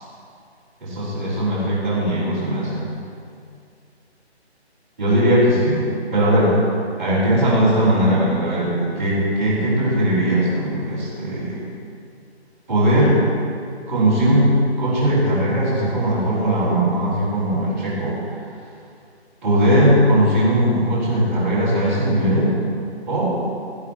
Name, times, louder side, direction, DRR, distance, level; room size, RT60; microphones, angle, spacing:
voice 1, 0.8-2.8 5.0-6.5 7.0-11.6 12.7-13.2 13.9-18.1 19.4-22.5 23.1-23.3, right 1 dB, 15° right, -13 dB, 3.5 m, -19 dB
17.0 x 10.5 x 4.3 m, 2.4 s
hypercardioid pair, 180°, 33 cm